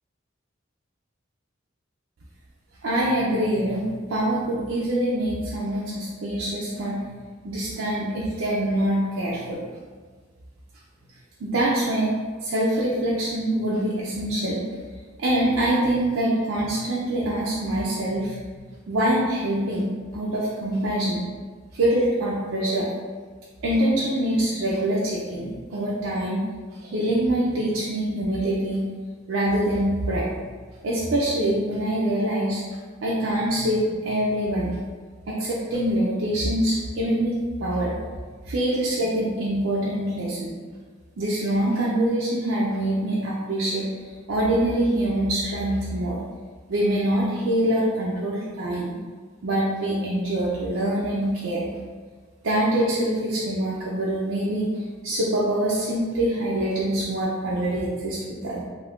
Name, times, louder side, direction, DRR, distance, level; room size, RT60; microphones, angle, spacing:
voice 1, 2.8-7.1 7.4-9.6 11.4-12.1 12.4-14.7 15.2-18.6 18.9-21.3 21.7-22.9 23.6-26.4 26.7-28.9 29.3-30.3 30.8-32.6 33.0-34.8 35.3-38.0 38.4-40.5 41.2-46.2 46.7-49.0 49.4-51.7 52.4-58.6, right 1 dB, 70° right, -6 dB, 0.5 m, -24 dB
2.6 x 2.4 x 3.5 m, 1.5 s
head